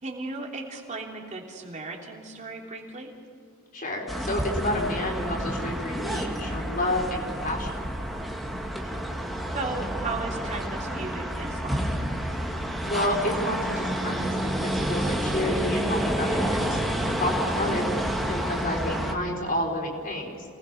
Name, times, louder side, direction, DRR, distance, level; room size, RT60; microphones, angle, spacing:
voice 1, 0.0-3.1 8.8-9.0 9.5-11.9 17.5-17.8, right 3 dB, 35° right, 0 dB, 3.2 m, -36 dB
voice 2, 3.7-7.8 12.8-17.9 18.3-20.5, left 1 dB, 40° left, 0 dB, 4.5 m, -30 dB
Student residence - Street, 4.1-19.1, equal, ahead, 2.0 m, -29 dB
29.0 x 19.5 x 5.8 m, 2.4 s
head